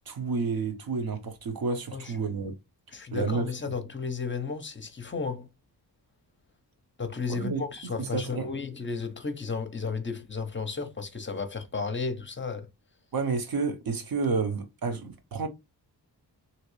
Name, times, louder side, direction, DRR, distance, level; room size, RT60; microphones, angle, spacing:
voice 1, 0.1-2.5 3.1-3.5 7.3-7.6 8.0-8.5 13.1-15.5, right 4 dB, 55° right, 0.9 m, -30 dB
voice 2, 2.9-5.5 7.0-12.7, left 4 dB, 30° left, 0.7 m, -33 dB
3.1 x 2.8 x 3.1 m
wide cardioid pair, 100°, 42 cm